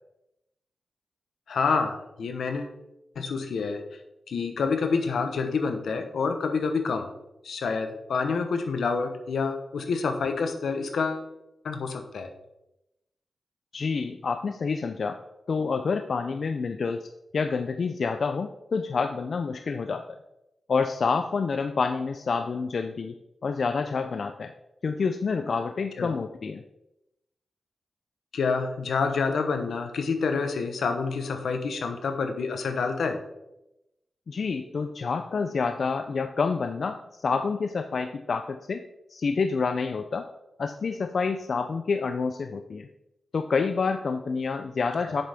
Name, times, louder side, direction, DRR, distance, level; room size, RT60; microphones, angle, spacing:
voice 1, 1.5-2.7 3.2-3.8 4.3-7.1 7.4-11.3 11.6-12.3 26.0-26.1 28.3-33.2, left 4 dB, 85° left, 6 dB, 0.9 m, -28 dB
voice 2, 13.7-15.2 15.5-20.0 20.7-23.1 23.4-24.5 24.8-26.6 34.3-38.8 39.1-40.3 40.6-42.9 43.3-45.2, left 5 dB, 60° left, 7 dB, 0.4 m, -28 dB
7.8 x 6.6 x 3.5 m, 0.90 s
wide cardioid pair, 100°, 0 cm